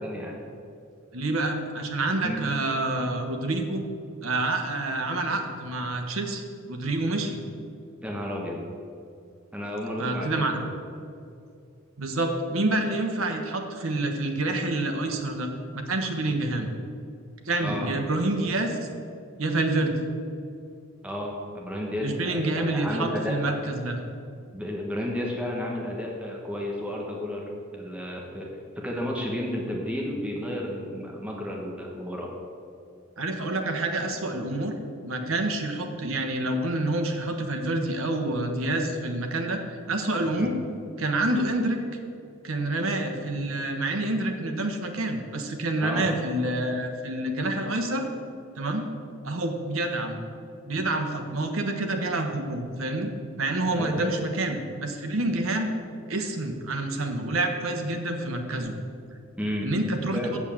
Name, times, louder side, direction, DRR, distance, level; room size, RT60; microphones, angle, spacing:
voice 1, 0.0-0.4 2.2-2.4 8.0-8.6 9.5-10.7 17.6-17.9 21.0-23.4 24.5-28.5 28.8-32.3 40.4-40.5 45.8-46.1 53.8-54.0 59.4-59.7 60.1-60.4, left 1 dB, 5° right, -2 dB, 1.2 m, -32 dB
voice 2, 1.1-3.8 4.2-7.4 10.0-10.6 12.0-15.5 15.7-16.7 17.5-18.8 19.4-20.0 22.0-24.0 33.2-34.7 35.0-39.6 39.9-40.5 41.0-41.8 42.4-48.1 48.6-48.9 49.2-50.2 50.7-53.1 53.4-55.7 56.1-58.8 59.6-60.2, right 2 dB, 90° right, 4 dB, 1.2 m, -27 dB
7.3 x 7.1 x 7.2 m, 2.4 s
head